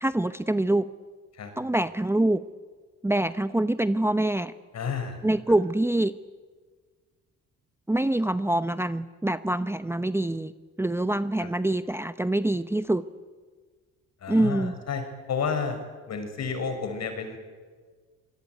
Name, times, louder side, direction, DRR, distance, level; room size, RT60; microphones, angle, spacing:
voice 1, 0.0-0.9 1.6-2.4 3.0-4.5 5.2-6.1 7.9-10.5 10.8-13.1 14.3-14.7, right 1 dB, 10° right, 12 dB, 0.8 m, -25 dB
voice 2, 4.7-5.2 11.4-11.5 14.2-15.0 15.3-15.8 16.1-17.4, left 5 dB, 60° left, 7 dB, 6.0 m, -31 dB
26.0 x 20.5 x 9.6 m, 1.5 s
cardioid pair, 90°, 30 cm